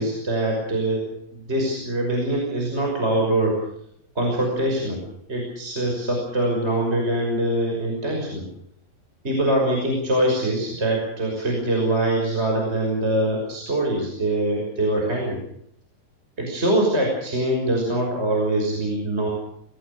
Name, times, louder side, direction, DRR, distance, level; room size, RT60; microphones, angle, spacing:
voice 1, 0.0-3.6 4.1-5.0 5.3-8.5 9.2-15.4 16.4-19.3, right 1 dB, 15° right, 0 dB, 5.9 m, -23 dB
26.5 x 18.5 x 6.7 m, 0.70 s
omnidirectional pair, 4.8 m